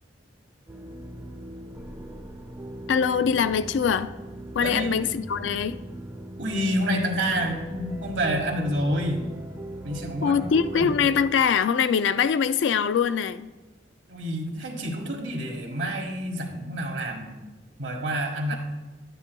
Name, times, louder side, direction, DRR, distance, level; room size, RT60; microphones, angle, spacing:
sound 1, 0.7-11.4, right 1 dB, 15° right, 1.0 m, -39 dB
voice 1, 2.9-4.1 4.5-5.8 10.2-13.5, left 7 dB, 70° left, 0.3 m, -23 dB
voice 2, 4.6-5.0 6.4-9.2 9.8-10.4 10.7-10.9 14.1-17.5 17.8-18.6, equal, 70° right, 1.6 m, -28 dB
11.0 x 9.9 x 2.3 m
head